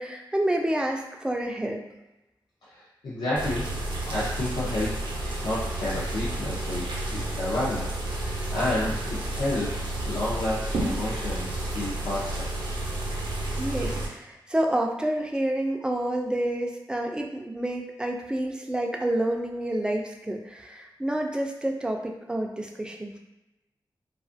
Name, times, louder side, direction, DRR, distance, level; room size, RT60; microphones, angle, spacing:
voice 1, 0.0-1.8 13.6-23.2, right 1 dB, 10° right, 2 dB, 0.3 m, -29 dB
voice 2, 2.7-3.7 4.1-12.5, left 1 dB, 75° left, -9 dB, 0.5 m, -31 dB
sound 1, 3.4-14.1, right 1 dB, 70° right, 0.5 m, -31 dB
2.4 x 2.4 x 2.4 m, 0.96 s
wide cardioid pair, 100°, 8 cm